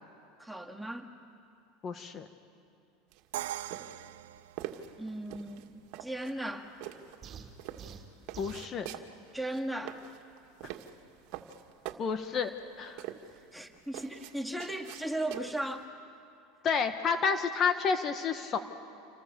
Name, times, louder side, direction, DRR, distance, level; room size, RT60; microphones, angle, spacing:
voice 1, 0.4-1.1 5.0-6.7 9.3-10.0 13.5-15.9, right 1 dB, ahead, 3 dB, 2.1 m, -37 dB
voice 2, 1.8-2.3 8.4-8.9 12.0-12.5 12.8-13.0 16.6-18.6, left 6 dB, 35° left, 8 dB, 1.6 m, -30 dB
sound 1, 3.1-15.8, right 12 dB, 60° right, 1.9 m, -45 dB
Crash cymbal, 3.3-5.3, right 13 dB, 85° right, 0.7 m, -40 dB
sound 2, 7.2-8.7, right 7 dB, 35° right, 2.8 m, -47 dB
28.5 x 25.5 x 7.1 m, 2.5 s
supercardioid pair, 110°, 0 cm